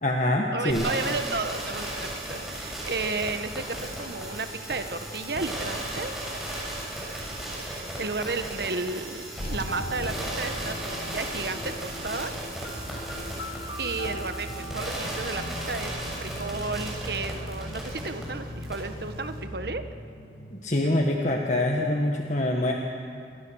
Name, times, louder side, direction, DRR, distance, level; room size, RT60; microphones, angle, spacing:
voice 1, 0.0-0.9 20.5-22.7, left 1 dB, 40° left, 1 dB, 1.5 m, -25 dB
voice 2, 0.5-6.1 7.1-7.2 7.6-12.3 13.8-15.9 16.2-19.8, right 3 dB, 65° right, 8 dB, 1.4 m, -33 dB
sound 1, 0.7-18.2 18.6-18.7, right 1 dB, ahead, 7.3 m, -36 dB
sound 2, 9.4-21.4, left 1 dB, 85° left, 2.3 m, -39 dB
sound 3, 12.8-19.7, right 1 dB, 30° right, 2.5 m, -43 dB
28.5 x 23.0 x 6.4 m, 2.3 s
head